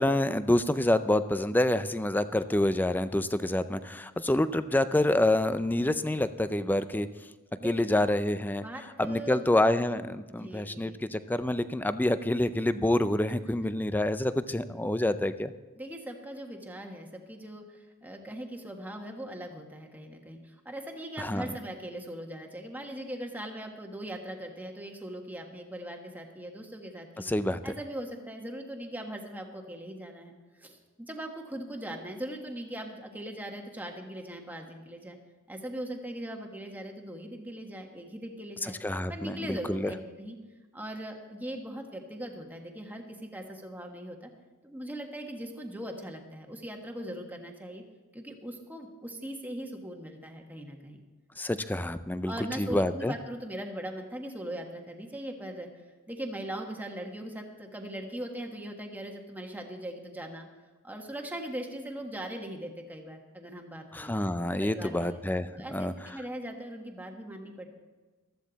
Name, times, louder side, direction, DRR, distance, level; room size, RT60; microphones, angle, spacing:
voice 1, 0.0-7.1 7.6-8.6 9.0-15.5 21.2-21.5 27.2-27.7 38.6-39.9 51.4-53.1 63.9-65.9, left 1 dB, 10° left, 13 dB, 0.4 m, -27 dB
voice 2, 8.6-9.4 10.3-11.1 15.8-27.2 27.6-35.2 35.5-38.8 39.1-40.4 40.7-44.3 44.6-47.8 48.1-51.0 52.2-55.7 56.1-60.5 60.8-64.2 64.6-65.2 65.6-67.7, right 1 dB, 10° right, 2 dB, 1.4 m, -40 dB
14.5 x 13.0 x 4.1 m, 1.3 s
head